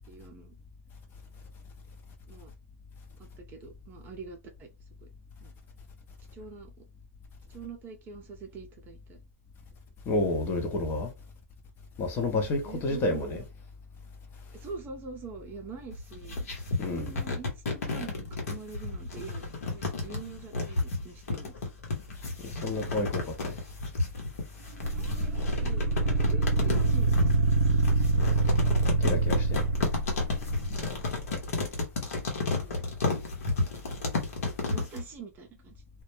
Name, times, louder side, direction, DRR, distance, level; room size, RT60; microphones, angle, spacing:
voice 1, 0.1-0.6 2.3-2.5 3.2-4.7 5.0-5.1 5.4-5.5 6.3-6.8 7.5-9.2 12.6-13.4 14.5-16.5 16.9-21.5 24.9-27.6 32.5-32.9 34.4-35.8, right 5 dB, 25° right, 0.6 m, -45 dB
voice 2, 10.1-11.1 12.0-13.4 16.8-17.1 22.4-23.5 29.0-29.6, left 2 dB, 25° left, 0.7 m, -30 dB
sound 1, 15.9-35.0, left 3 dB, 75° left, 0.9 m, -32 dB
Monster Low Roar, 24.8-31.0, right 3 dB, 80° right, 0.6 m, -26 dB
2.2 x 2.0 x 3.0 m
hypercardioid pair, 125°, 8 cm